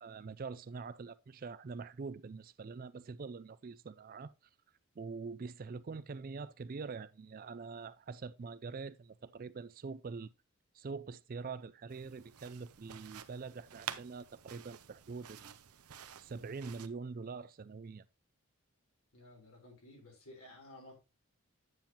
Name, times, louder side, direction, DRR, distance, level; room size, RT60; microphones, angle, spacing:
voice 1, 0.0-4.3 5.0-10.3 10.7-15.6 16.2-18.1, right 4 dB, 40° right, 0.4 m, -44 dB
sound 1, 11.9-16.9, right 9 dB, 80° right, 0.7 m, -49 dB
voice 2, 19.1-21.0, left 1 dB, 75° left, 4.0 m, -54 dB
9.4 x 7.2 x 2.9 m
head